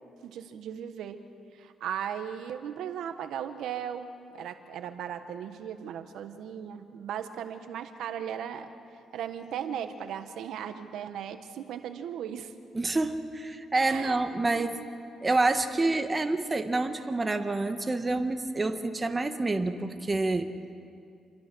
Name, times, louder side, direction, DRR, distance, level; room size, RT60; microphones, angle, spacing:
voice 1, 0.2-1.2 1.6-8.8 9.1-12.5 13.8-14.2 14.5-14.9, right 9 dB, 80° right, 8 dB, 1.4 m, -37 dB
voice 2, 12.7-14.8 15.2-20.5, right 2 dB, 25° right, 6 dB, 1.7 m, -28 dB
28.0 x 23.5 x 6.4 m, 2.4 s
cardioid pair, 90°, 0 cm